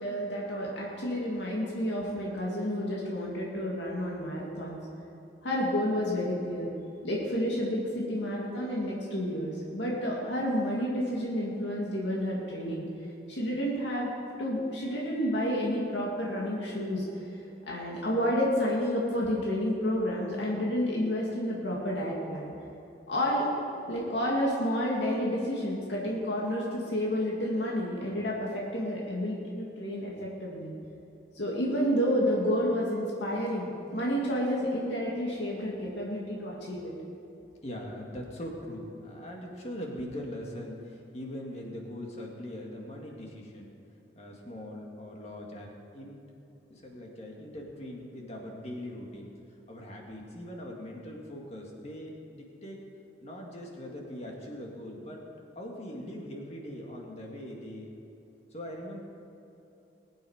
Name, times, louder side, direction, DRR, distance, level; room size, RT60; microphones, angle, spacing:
voice 1, 0.0-4.8 5.4-6.7 7.0-12.8 13.3-14.1 14.4-22.5 23.1-23.5 23.9-30.7 31.3-36.9, equal, 80° left, -4 dB, 2.3 m, -30 dB
voice 2, 37.6-43.7 44.2-46.2 46.7-49.3 49.7-52.9 53.2-55.2 55.6-57.9 58.5-59.0, left 1 dB, 35° left, -1 dB, 2.1 m, -41 dB
20.5 x 9.2 x 5.0 m, 3.0 s
head